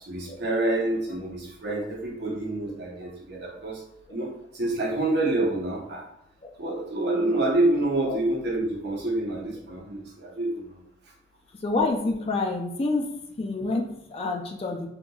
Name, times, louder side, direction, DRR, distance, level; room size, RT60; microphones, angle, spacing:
voice 1, 0.1-3.8 4.1-6.0 6.6-10.8, right 2 dB, 60° right, -2 dB, 0.9 m, -27 dB
voice 2, 11.6-13.1 13.4-14.9, left 3 dB, 30° left, 1 dB, 0.4 m, -27 dB
3.7 x 2.8 x 2.3 m, 0.79 s
head